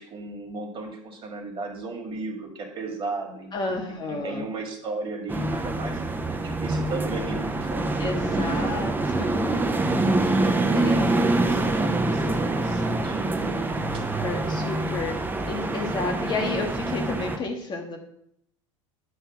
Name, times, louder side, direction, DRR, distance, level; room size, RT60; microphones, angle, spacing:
voice 1, 0.0-7.9 8.2-8.5 10.4-13.6 13.9-14.0, right 3 dB, 30° right, 2 dB, 1.8 m, -35 dB
voice 2, 3.5-4.4 8.0-9.6 10.7-11.1 13.9-15.2 15.5-18.0, left 3 dB, 25° left, 1 dB, 1.1 m, -31 dB
sound 1, 5.3-17.4, right 2 dB, 10° right, 0.6 m, -25 dB
9.4 x 3.3 x 5.9 m, 0.72 s
figure-of-eight pair, 75°, 17 cm